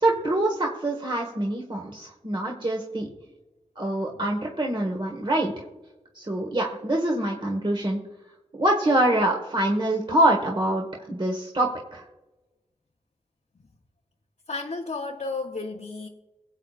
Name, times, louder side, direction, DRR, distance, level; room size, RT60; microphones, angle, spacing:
voice 1, 0.0-3.1 3.7-5.5 6.1-8.0 8.6-12.0, right 1 dB, 40° right, 1.4 m, -25 dB
voice 2, 14.5-16.1, left 3 dB, 60° left, 0.9 m, -32 dB
23.0 x 8.1 x 2.5 m
wide cardioid pair, 60°, 13 cm